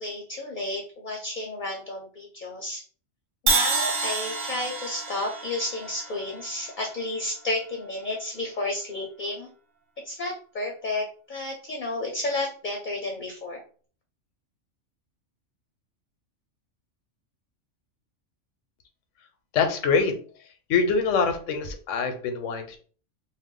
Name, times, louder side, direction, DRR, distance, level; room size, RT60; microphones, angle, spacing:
voice 1, 0.0-2.8 3.4-9.5 10.0-13.6, left 2 dB, 55° left, 1 dB, 0.6 m, -32 dB
Crash cymbal, 3.5-7.5, right 3 dB, 60° right, 0.9 m, -29 dB
voice 2, 19.5-20.1 20.7-22.8, left 5 dB, 85° left, 7 dB, 1.0 m, -24 dB
2.5 x 2.2 x 3.6 m, 0.42 s
omnidirectional pair, 1.3 m